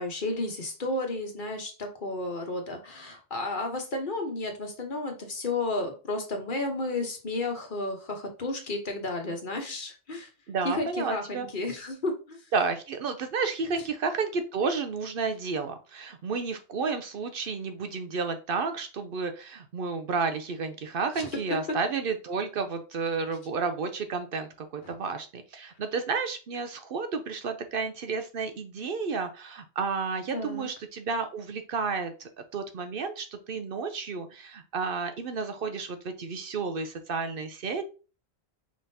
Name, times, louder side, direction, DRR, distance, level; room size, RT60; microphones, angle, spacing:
voice 1, 0.0-10.3 10.6-12.4 21.2-21.3 24.8-24.9 30.3-30.7, left 2 dB, 50° left, 3 dB, 1.2 m, -32 dB
voice 2, 10.5-11.5 12.5-37.8, right 4 dB, 60° right, 8 dB, 0.8 m, -31 dB
5.1 x 3.6 x 2.7 m, 0.33 s
omnidirectional pair, 1.1 m